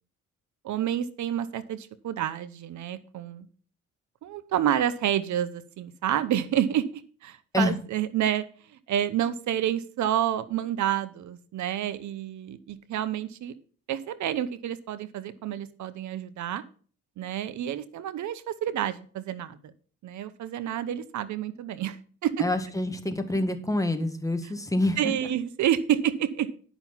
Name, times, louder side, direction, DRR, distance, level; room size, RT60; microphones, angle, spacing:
voice 1, 0.6-3.5 4.2-8.5 8.7-13.5 13.9-16.6 17.2-19.7 20.0-22.0 22.2-22.4 25.0-26.5, right 10 dB, 70° right, 14 dB, 0.9 m, -29 dB
voice 2, 22.4-25.0, left 1 dB, 10° left, 7 dB, 1.7 m, -27 dB
11.0 x 6.1 x 5.6 m, 0.43 s
cardioid pair, 90°, 30 cm